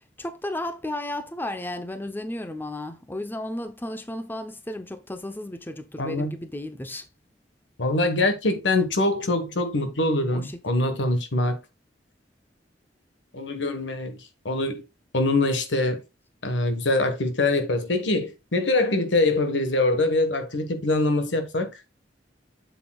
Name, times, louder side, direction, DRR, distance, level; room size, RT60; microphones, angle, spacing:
voice 1, 0.2-7.1 10.3-10.5, left 1 dB, 10° left, 0.6 m, -33 dB
voice 2, 6.0-6.3 7.8-11.6 13.3-14.9 15.1-16.0 16.4-21.8, left 2 dB, 85° left, 1.3 m, -24 dB
7.5 x 7.1 x 2.3 m
head